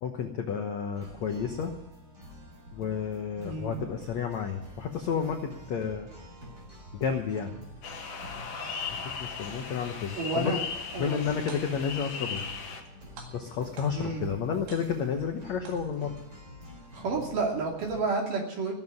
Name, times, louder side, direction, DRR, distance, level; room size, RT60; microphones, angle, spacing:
voice 1, 0.0-1.7 2.7-6.1 6.9-7.5 8.9-10.6 11.0-12.4 13.3-16.2, left 6 dB, 80° left, 4 dB, 1.5 m, -31 dB
sound 1, 0.9-18.0, left 1 dB, 25° right, 4.1 m, -47 dB
sound 2, 7.8-12.8, left 5 dB, 45° left, 2.3 m, -37 dB
voice 2, 10.2-10.6 10.9-11.2 13.9-14.3 16.9-18.8, right 3 dB, 55° right, 0 dB, 3.9 m, -30 dB
sound 3, 11.5-12.0 12.4-12.9 13.2-14.2 14.7-15.2 15.7-16.2, right 5 dB, 80° right, 4.1 m, -49 dB
16.5 x 7.4 x 9.6 m, 0.93 s
omnidirectional pair, 4.8 m